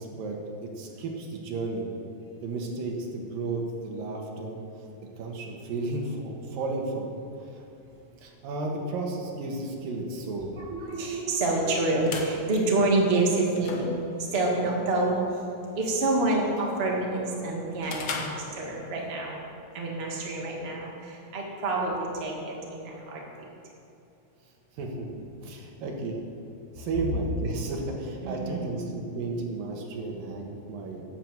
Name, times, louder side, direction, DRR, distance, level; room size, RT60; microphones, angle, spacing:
voice 1, 0.0-1.9 2.4-4.6 5.2-7.6 8.2-10.5 24.7-26.2 26.7-31.0, right 3 dB, 80° right, 0 dB, 3.2 m, -33 dB
voice 2, 10.6-14.0 14.3-15.2 15.8-23.5 28.2-28.8, right 2 dB, 25° right, -2 dB, 1.5 m, -28 dB
sound 1, 11.7-19.1, left 4 dB, 75° left, 1.1 m, -41 dB
10.5 x 9.0 x 7.9 m, 2.7 s
omnidirectional pair, 4.0 m